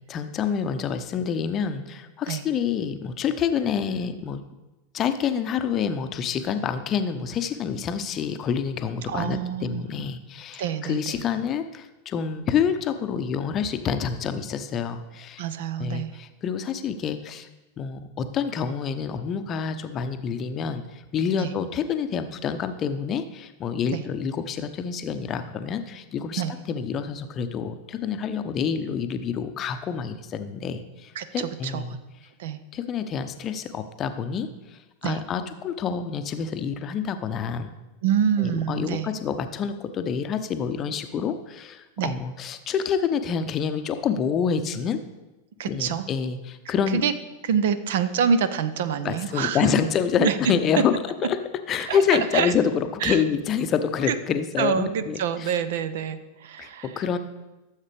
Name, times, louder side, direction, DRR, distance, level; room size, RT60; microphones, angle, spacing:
voice 1, 0.0-4.4 4.9-15.4 15.8-17.5 17.8-26.4 26.7-32.0 32.7-37.7 38.4-45.0 45.6-47.0 49.0-51.4 51.7-55.5 56.6-57.2, left 7 dB, 30° left, 9 dB, 0.7 m, -27 dB
voice 2, 9.1-9.9 10.6-11.2 15.4-16.1 21.4-21.5 23.9-24.0 26.4-26.5 31.2-31.8 32.4-32.6 35.0-35.2 38.0-39.1 42.0-42.1 45.6-46.1 46.9-47.1 47.4-49.7 50.2-50.3 51.8-52.5 53.0-53.2 54.1-54.2 54.6-56.9, right 7 dB, 55° right, 13 dB, 0.6 m, -26 dB
13.5 x 7.3 x 3.4 m, 1.1 s
figure-of-eight pair, 90°, 0 cm